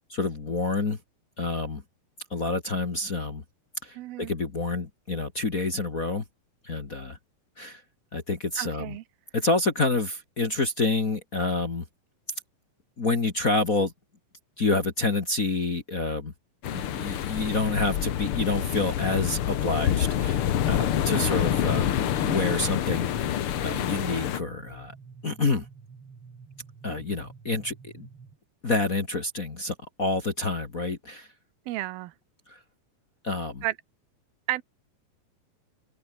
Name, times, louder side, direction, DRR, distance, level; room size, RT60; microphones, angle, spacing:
voice 1, 0.1-1.0 1.4-1.8 2.3-3.4 3.8-6.2 6.6-7.2 7.6-7.8 8.1-8.9 9.3-11.8 13.0-13.9 14.6-16.3 16.7-23.1 23.6-24.9 25.2-25.7 26.8-28.1 28.6-31.3 32.5-32.6 33.2-33.6, left 3 dB, 35° left, 1.6 m, -28 dB
voice 2, 3.9-4.3 8.6-9.0 21.1-21.6 31.7-32.1 33.6-33.7 34.5-34.6, right 16 dB, 90° right, 2.8 m, -33 dB
sound 1, 16.6-24.4, left 10 dB, 70° left, 1.3 m, -27 dB
sound 2, 23.2-28.4, right 5 dB, 40° right, 4.0 m, -49 dB
omnidirectional pair, 4.3 m